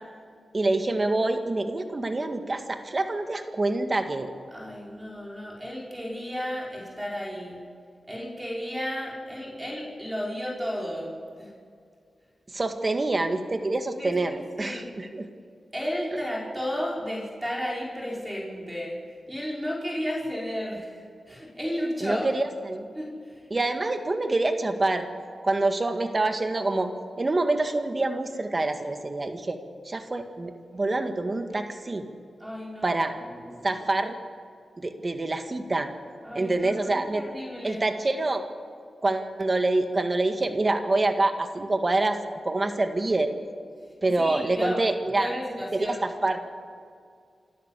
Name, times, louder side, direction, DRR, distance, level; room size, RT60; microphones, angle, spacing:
voice 1, 0.5-4.3 12.5-15.3 22.0-22.9 23.5-25.1 25.4-26.9 27.2-29.6 29.9-32.1 32.8-33.1 33.6-34.2 34.8-35.9 36.4-37.2 37.6-38.4 39.0-42.2 42.4-43.3 44.0-45.3 45.7-46.4, right 2 dB, 35° right, 6 dB, 1.9 m, -26 dB
voice 2, 4.5-7.6 8.1-11.1 11.4-11.5 14.0-14.9 15.7-19.0 19.3-22.3 22.9-23.5 32.4-33.8 36.2-37.8 44.2-44.8 45.1-46.1, equal, 15° right, -4 dB, 5.7 m, -33 dB
27.5 x 12.5 x 8.4 m, 2.2 s
cardioid pair, 65°, 0 cm